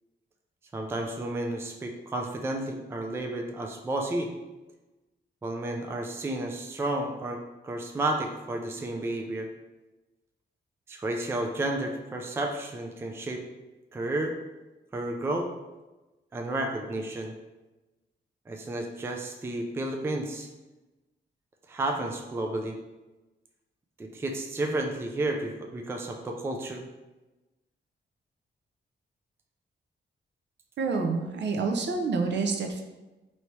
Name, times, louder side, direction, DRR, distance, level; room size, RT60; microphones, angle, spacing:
voice 1, 0.7-4.3 5.4-9.5 10.9-13.4 13.9-14.4 14.9-15.5 16.3-17.3 18.5-20.5 21.7-22.8 24.0-26.8, right 2 dB, 15° right, 2 dB, 0.3 m, -32 dB
voice 2, 30.8-32.8, right 4 dB, 65° right, 3 dB, 0.5 m, -28 dB
3.1 x 2.8 x 4.5 m, 1.1 s
wide cardioid pair, 180°, 19 cm